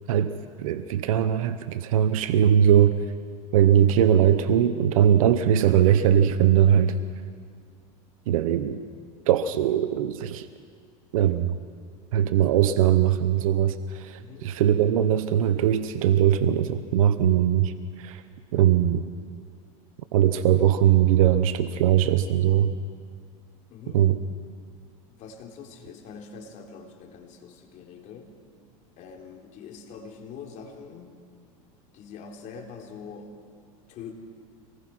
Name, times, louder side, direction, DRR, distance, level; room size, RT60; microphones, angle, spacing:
voice 1, 0.6-3.0 3.5-7.0 8.3-8.8 9.3-10.5 11.1-11.6 12.1-18.2 18.5-19.1 20.1-22.7 23.9-24.2, right 10 dB, 80° right, 11 dB, 0.9 m, -20 dB
voice 2, 14.2-14.5 23.7-24.0 25.1-28.3 29.0-31.1 31.9-33.3 33.9-34.1, left 6 dB, 45° left, 2 dB, 3.6 m, -43 dB
25.5 x 20.0 x 6.0 m, 2.1 s
supercardioid pair, 120°, 17 cm